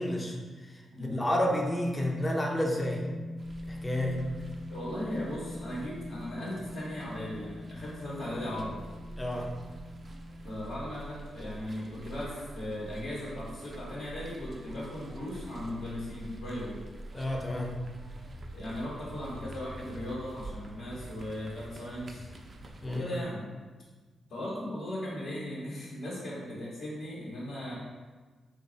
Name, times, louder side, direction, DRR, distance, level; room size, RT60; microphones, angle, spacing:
voice 1, 0.0-3.1 3.7-4.2 9.2-9.5 17.1-17.7 22.8-23.1, left 1 dB, 20° left, 0 dB, 0.6 m, -31 dB
sound 1, 1.4-10.5, left 1 dB, 90° left, 0.7 m, -42 dB
sound 2, 3.4-23.0, right 1 dB, 40° right, 0.4 m, -46 dB
voice 2, 4.7-8.8 10.4-16.8 18.5-22.3 22.8-23.4 24.3-27.7, left 1 dB, 70° left, -8 dB, 1.0 m, -37 dB
3.1 x 2.2 x 3.8 m, 1.4 s
supercardioid pair, 50°, 0 cm